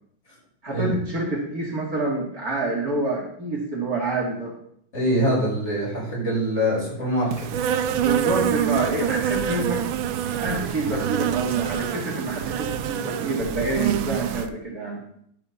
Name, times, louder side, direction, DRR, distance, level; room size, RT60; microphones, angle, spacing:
voice 1, 0.6-4.5 8.0-15.0, right 2 dB, 50° right, -3 dB, 2.8 m, -27 dB
voice 2, 4.9-7.7, equal, 35° left, -5 dB, 5.7 m, -24 dB
Insect, 7.3-14.5, right 9 dB, 85° right, 1.4 m, -26 dB
11.5 x 8.4 x 4.1 m, 0.68 s
omnidirectional pair, 2.1 m